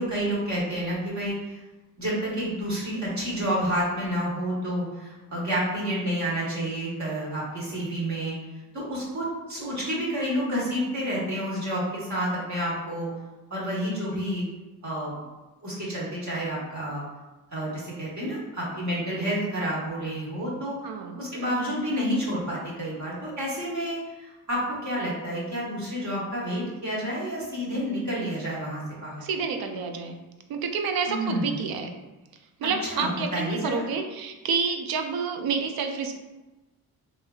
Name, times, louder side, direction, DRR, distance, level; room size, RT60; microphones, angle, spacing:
voice 1, 0.0-1.6 2.0-8.3 8.7-13.1 13.5-14.5 14.8-15.1 15.6-17.0 17.5-20.8 21.2-29.3 31.1-31.6 32.6-33.8, equal, 45° right, -6 dB, 1.3 m, -29 dB
voice 2, 20.8-21.2 29.2-30.2 30.5-31.9 32.6-36.2, right 5 dB, 70° right, 6 dB, 0.5 m, -29 dB
2.9 x 2.6 x 2.3 m, 1.1 s
cardioid pair, 85°, 38 cm